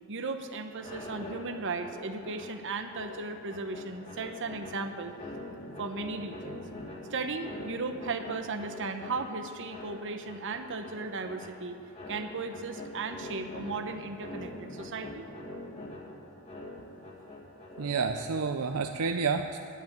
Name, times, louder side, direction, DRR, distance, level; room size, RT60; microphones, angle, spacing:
voice 1, 0.1-5.1 5.8-6.6 7.1-11.8 12.1-15.3, right 3 dB, 55° right, 6 dB, 0.9 m, -36 dB
sound 1, 0.8-18.6, left 1 dB, 25° left, 2.0 m, -44 dB
voice 2, 17.8-19.6, right 5 dB, 90° right, 6 dB, 0.6 m, -29 dB
10.5 x 10.0 x 9.3 m, 2.4 s
head